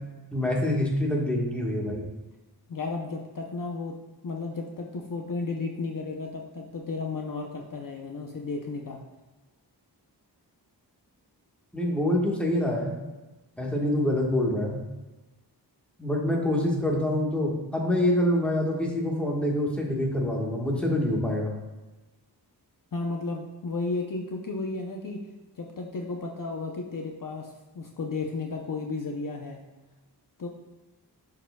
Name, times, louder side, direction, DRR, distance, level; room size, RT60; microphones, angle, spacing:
voice 1, 0.3-2.1 11.7-13.0 13.6-14.8 16.0-21.5, left 1 dB, 5° left, -2 dB, 1.3 m, -26 dB
voice 2, 2.7-4.0 4.2-9.0 22.9-25.2 25.5-29.6 30.4-30.5, left 3 dB, 50° left, 1 dB, 0.7 m, -33 dB
11.0 x 4.8 x 2.2 m, 1.1 s
wide cardioid pair, 110°, 41 cm